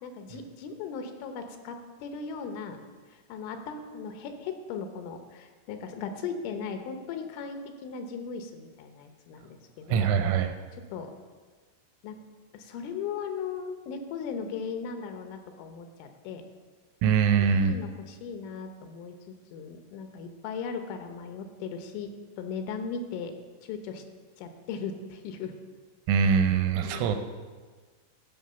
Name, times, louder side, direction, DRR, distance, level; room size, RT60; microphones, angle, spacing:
voice 1, 0.0-2.8 3.1-10.1 10.9-11.1 12.0-12.2 12.5-16.4 17.3-22.1 22.4-23.3 23.6-24.0 24.4-25.5 26.7-27.2, left 5 dB, 80° left, 6 dB, 3.3 m, -37 dB
voice 2, 9.9-10.5 17.0-17.7 26.1-27.2, right 6 dB, 80° right, 7 dB, 3.0 m, -23 dB
13.0 x 5.6 x 6.8 m, 1.4 s
omnidirectional pair, 5.8 m